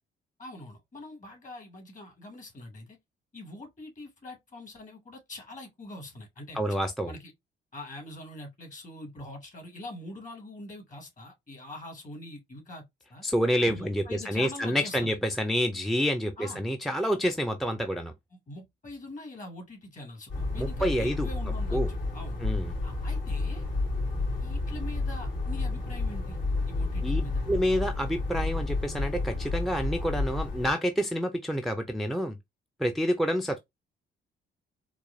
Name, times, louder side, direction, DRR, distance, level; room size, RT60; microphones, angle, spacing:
voice 1, 0.4-3.0 3.3-6.6 7.0-7.3 7.7-12.8 13.1-13.2 13.6-15.2 16.4-16.6 18.5-22.4 22.8-23.6 24.4-26.4 26.7-27.4, left 1 dB, 40° left, 1.9 m, -43 dB
voice 2, 6.5-7.1 13.2-18.1 20.6-21.3 21.7-21.9 22.4-22.7 27.0-27.2 27.5-32.4 32.8-33.6, equal, ahead, 0.4 m, -28 dB
sound 1, 20.3-30.7, left 3 dB, 70° left, 2.3 m, -31 dB
4.6 x 2.3 x 2.5 m
cardioid pair, 90°, 20 cm